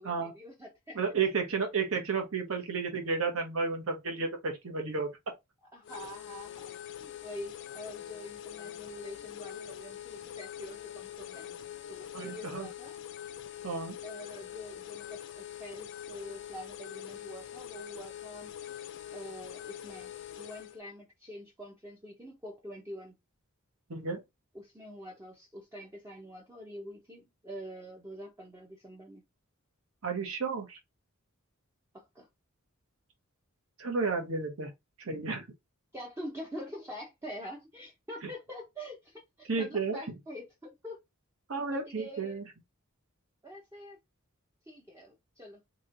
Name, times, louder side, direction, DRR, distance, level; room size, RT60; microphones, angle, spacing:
voice 1, 0.0-1.0 5.7-13.0 14.0-23.2 24.5-29.2 31.9-32.3 35.9-41.0 41.7-42.4 43.4-44.0 44.7-45.6, equal, 15° right, 0.6 m, -46 dB
voice 2, 0.9-5.3 12.1-12.7 13.6-14.0 23.9-24.2 30.0-30.8 33.8-34.7 35.0-35.4 39.5-40.0 41.5-42.4, right 4 dB, 65° right, 1.0 m, -32 dB
sound 1, 5.8-20.8, left 10 dB, 55° left, 0.3 m, -44 dB
3.0 x 2.8 x 2.5 m
head